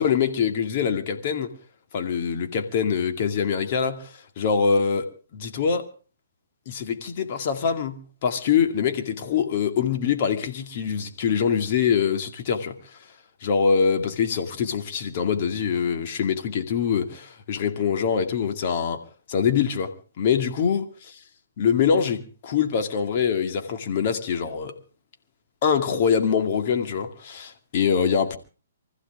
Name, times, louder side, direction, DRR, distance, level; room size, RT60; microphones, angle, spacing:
voice 1, 0.0-1.5 1.9-5.9 6.7-12.8 13.4-19.0 19.3-20.9 21.6-24.7 25.6-28.4, left 6 dB, 45° left, 2.2 m, -24 dB
25.0 x 15.0 x 3.6 m
hypercardioid pair, 140°, 0 cm